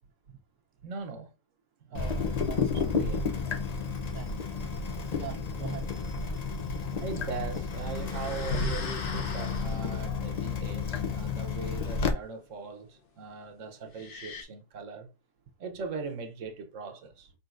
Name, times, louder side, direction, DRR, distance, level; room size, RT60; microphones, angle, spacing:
voice 1, 0.8-1.3 1.8-3.3 4.5-4.6 7.0-15.1 15.6-17.3, right 4 dB, 60° right, 1.0 m, -40 dB
Water tap faucet / Drip, 1.9-12.1, left 5 dB, 85° left, 0.3 m, -32 dB
voice 2, 1.9-3.0 4.1-4.5 5.2-5.9, right 7 dB, 75° right, 1.3 m, -43 dB
sound 1, 7.6-10.0 13.9-14.4, left 2 dB, 45° left, 0.8 m, -36 dB
5.0 x 4.0 x 2.5 m
omnidirectional pair, 1.7 m